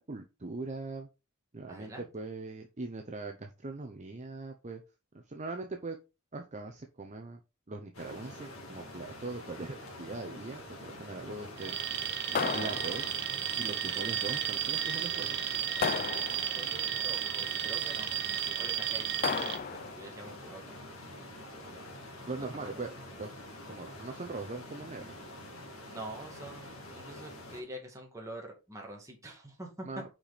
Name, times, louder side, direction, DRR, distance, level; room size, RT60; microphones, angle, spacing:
voice 1, 0.1-1.1 1.5-4.8 5.1-6.0 6.3-7.4 7.7-11.8 12.3-13.1 13.6-15.4 22.3-23.3 23.7-25.2 29.9-30.1, right 3 dB, 35° right, 4 dB, 0.8 m, -41 dB
voice 2, 1.7-2.1 16.5-21.9 22.4-22.7 25.9-29.9, right 1 dB, 15° right, -1 dB, 2.2 m, -46 dB
sound 1, 7.9-27.6, left 1 dB, 65° left, 2.1 m, -47 dB
Alarm, 11.6-19.6, right 9 dB, 55° right, 0.9 m, -33 dB
sound 2, 12.3-13.4 15.8-16.8 19.2-20.1, left 6 dB, 40° left, 0.4 m, -34 dB
6.0 x 5.0 x 4.2 m, 0.28 s
head